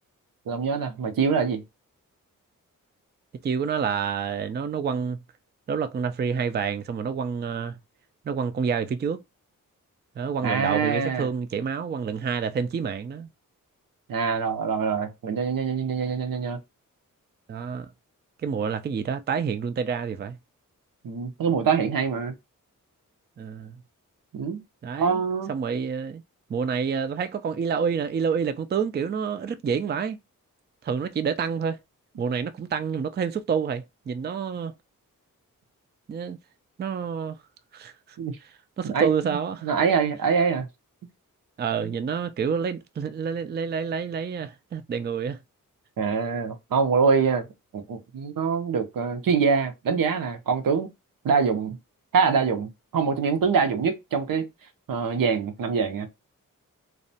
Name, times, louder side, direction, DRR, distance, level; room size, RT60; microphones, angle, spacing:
voice 1, 0.5-1.6 10.4-11.3 14.1-16.6 21.0-22.3 24.3-24.6 25.0-25.5 38.2-38.4 38.8-40.7 46.0-47.4 47.7-50.9 51.2-51.8 52.1-54.5 54.9-56.1, right 5 dB, 80° right, 0.6 m, -24 dB
voice 2, 3.4-5.2 5.7-7.8 8.3-9.2 10.2-13.3 17.5-17.9 18.4-20.4 23.4-23.7 24.8-25.2 25.5-26.2 26.5-30.2 30.8-31.8 32.2-34.7 36.1-36.4 36.8-37.4 37.7-38.2 38.8-39.7 41.6-45.4, right 6 dB, 30° right, 0.4 m, -28 dB
2.6 x 2.1 x 2.6 m
cardioid pair, 50°, 34 cm